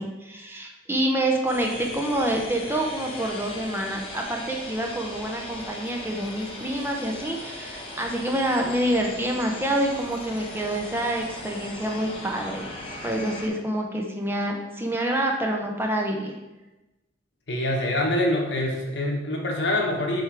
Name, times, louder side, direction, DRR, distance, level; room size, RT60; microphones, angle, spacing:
voice 1, 0.0-16.3, right 1 dB, 10° right, 1 dB, 0.6 m, -27 dB
sound 1, 1.5-13.5, left 1 dB, 30° left, 1.0 m, -38 dB
voice 2, 17.5-20.2, left 1 dB, 70° left, 0 dB, 1.2 m, -25 dB
6.7 x 3.4 x 4.7 m, 1.0 s
head